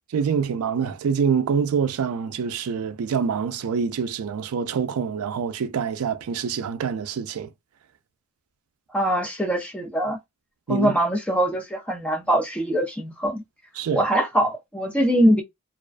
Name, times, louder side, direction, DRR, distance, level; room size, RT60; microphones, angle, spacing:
voice 1, 0.1-7.5 10.7-10.9 13.8-14.1, right 6 dB, 75° right, 0.4 m, -25 dB
voice 2, 8.9-10.2 10.7-13.4 13.9-15.4, right 1 dB, 5° left, 0.5 m, -22 dB
2.4 x 2.2 x 2.4 m
head